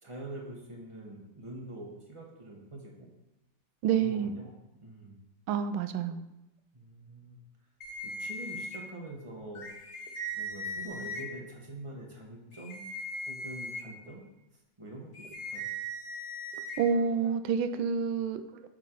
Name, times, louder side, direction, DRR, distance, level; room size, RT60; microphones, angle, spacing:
voice 1, 0.0-3.1 4.0-4.5 4.8-5.2 6.7-7.4 8.0-9.7 10.3-12.8 13.3-14.2 14.8-15.7, right 1 dB, 20° right, -1 dB, 1.1 m, -44 dB
voice 2, 3.8-4.3 5.5-6.3 16.5-18.6, right 6 dB, 85° right, 10 dB, 1.4 m, -29 dB
sound 1, 7.8-8.8 9.6-11.2 12.5-13.8 15.1-16.8, equal, 45° left, 0.8 m, -38 dB
8.4 x 3.9 x 4.6 m, 0.92 s
omnidirectional pair, 2.1 m